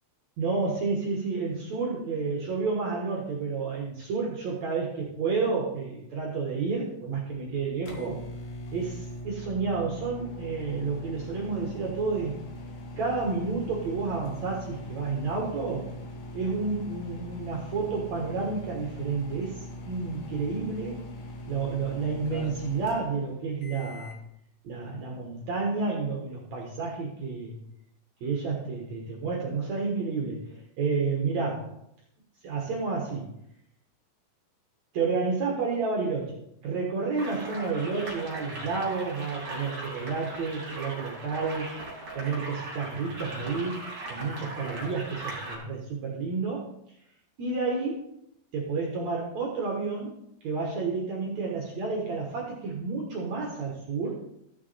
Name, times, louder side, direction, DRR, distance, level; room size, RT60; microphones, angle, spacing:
voice 1, 0.4-8.2 8.7-12.4 13.0-15.9 16.3-21.0 21.5-24.1 24.6-27.6 28.2-31.7 32.4-33.3 34.9-41.8 42.1-43.8 44.1-46.7 47.4-48.1 48.5-50.2 50.4-54.2, right 4 dB, 60° right, -2 dB, 2.0 m, -30 dB
sound 1, 7.4-24.2, left 1 dB, 65° left, 1.8 m, -41 dB
sound 2, 37.2-45.6, right 2 dB, 35° right, 3.4 m, -39 dB
14.5 x 6.1 x 4.2 m, 0.78 s
omnidirectional pair, 5.0 m